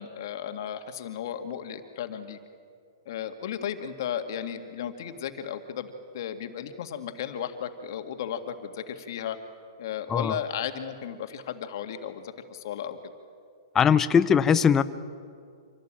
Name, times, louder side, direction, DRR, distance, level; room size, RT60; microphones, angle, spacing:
voice 1, 0.0-2.4 3.1-9.4 9.8-13.1, left 9 dB, 60° left, 7 dB, 2.0 m, -35 dB
voice 2, 13.7-14.8, left 7 dB, 15° left, 12 dB, 0.7 m, -20 dB
26.0 x 17.5 x 8.9 m, 2.3 s
hypercardioid pair, 145°, 2 cm